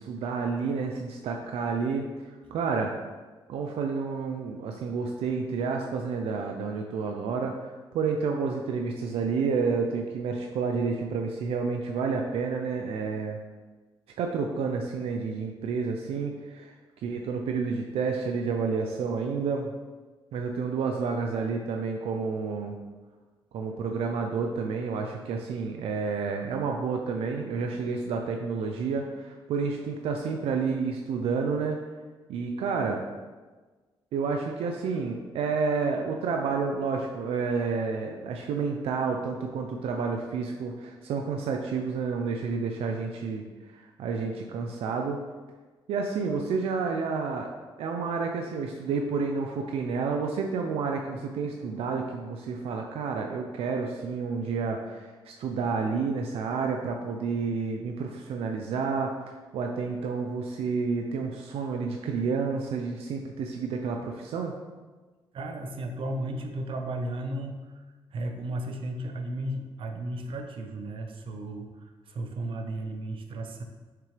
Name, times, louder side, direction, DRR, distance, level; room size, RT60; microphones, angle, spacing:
voice 1, 0.0-2.1 2.5-2.9 3.5-13.4 14.2-16.7 17.0-19.7 20.3-22.8 23.5-31.8 32.3-33.0 34.1-43.4 43.7-45.2 45.9-47.5 47.8-64.5, right 5 dB, 90° right, 3 dB, 0.6 m, -30 dB
voice 2, 65.3-67.8 68.1-73.6, right 1 dB, 65° right, 4 dB, 0.9 m, -34 dB
6.8 x 6.7 x 3.3 m, 1.3 s
cardioid pair, 100°, 10 cm